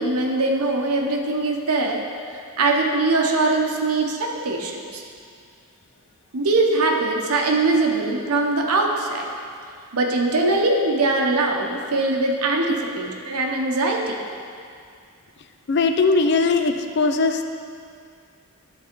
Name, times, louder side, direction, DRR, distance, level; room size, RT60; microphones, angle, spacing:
voice 1, 0.0-5.0 6.3-9.3 9.9-14.2, right 2 dB, 90° right, 1 dB, 0.9 m, -22 dB
voice 2, 15.7-17.4, left 3 dB, 50° left, 6 dB, 0.4 m, -19 dB
10.0 x 4.0 x 4.4 m, 2.3 s
head